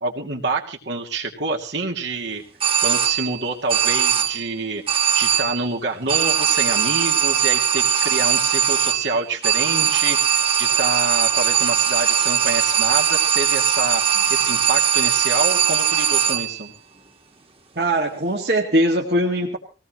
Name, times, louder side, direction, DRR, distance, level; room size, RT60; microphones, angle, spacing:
voice 1, 0.0-2.4 2.8-4.8 5.1-16.7, right 3 dB, 80° right, 1 dB, 2.7 m, -27 dB
sound 1, 2.6-3.4 3.7-4.5 4.9-5.7 6.1-16.6, right 8 dB, 30° right, 1.6 m, -20 dB
voice 2, 17.8-19.6, right 1 dB, 60° right, -1 dB, 2.0 m, -21 dB
20.5 x 17.5 x 3.2 m, 0.34 s
head